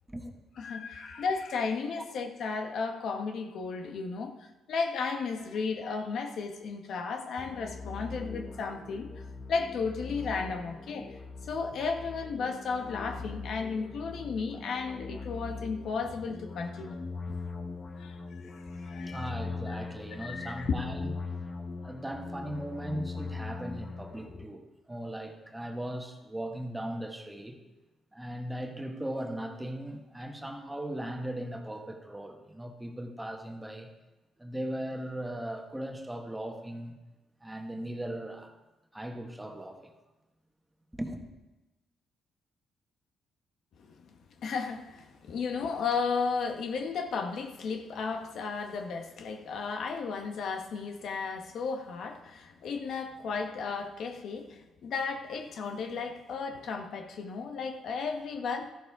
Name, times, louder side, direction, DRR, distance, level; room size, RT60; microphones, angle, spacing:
voice 1, 0.6-9.1 9.5-17.0 18.0-19.3 19.7-19.8 20.2-20.7 43.9-44.1 44.4-58.7, left 5 dB, 70° left, 1.2 m, -34 dB
sound 1, 7.4-24.4, left 3 dB, 30° left, 1.0 m, -41 dB
voice 2, 19.1-21.1 21.8-27.6 28.1-33.9 34.4-37.0 37.4-38.5 38.9-39.9 40.9-41.2, right 1 dB, 10° right, 1.5 m, -38 dB
13.5 x 11.5 x 3.6 m
cardioid pair, 90°, 0 cm